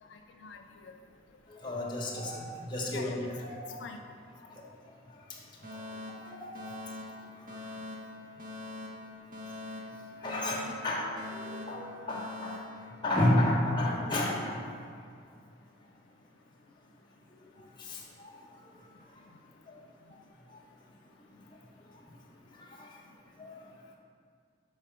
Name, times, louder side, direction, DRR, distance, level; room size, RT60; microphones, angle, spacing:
voice 1, 0.0-1.7 2.9-3.2 3.6-10.3 11.4-12.3 14.9-24.0, left 4 dB, 75° left, 4 dB, 0.3 m, -56 dB
voice 2, 1.5-2.4 2.7-3.1 3.4-3.6 6.2-6.6 10.2-12.5 13.0-14.6 17.8-18.0 22.8-22.9 23.4-23.6, left 1 dB, 25° left, -3 dB, 1.0 m, -31 dB
Alarm, 5.6-13.6, left 2 dB, 45° right, 0.9 m, -44 dB
4.9 x 4.7 x 5.7 m, 2.2 s
head